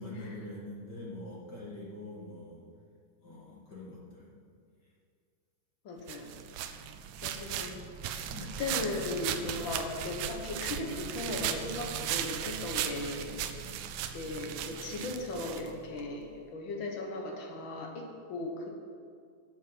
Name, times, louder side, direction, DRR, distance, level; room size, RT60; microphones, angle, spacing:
voice 1, 0.0-2.7 3.2-4.4 8.3-8.5 9.3-9.6 13.6-13.7, left 1 dB, 45° left, -5 dB, 1.4 m, -44 dB
voice 2, 5.8-6.4 7.2-8.3 8.6-13.3 14.1-18.7, left 2 dB, 65° left, 1 dB, 1.2 m, -37 dB
sound 1, 6.1-16.1, right 9 dB, 85° right, 1.6 m, -37 dB
12.0 x 8.3 x 5.5 m, 2.1 s
omnidirectional pair, 3.9 m